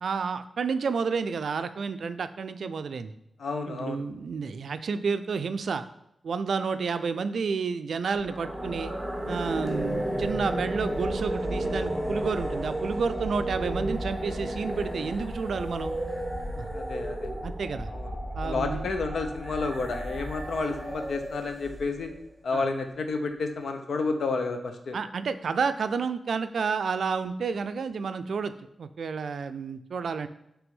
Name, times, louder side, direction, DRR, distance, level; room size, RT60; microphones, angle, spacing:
voice 1, 0.0-3.1 3.7-5.9 6.2-8.9 9.3-16.0 16.6-16.7 17.4-17.9 18.3-18.9 22.5-22.6 24.9-28.5 28.8-30.3, right 5 dB, 75° right, 11 dB, 0.3 m, -30 dB
voice 2, 3.4-4.0 16.7-17.3 17.9-18.1 18.4-22.1 22.4-25.0, left 3 dB, 75° left, 6 dB, 0.7 m, -30 dB
sound 1, 8.1-22.2, right 1 dB, 5° right, 1.2 m, -33 dB
6.0 x 3.3 x 5.3 m, 0.81 s
wide cardioid pair, 115°, 0 cm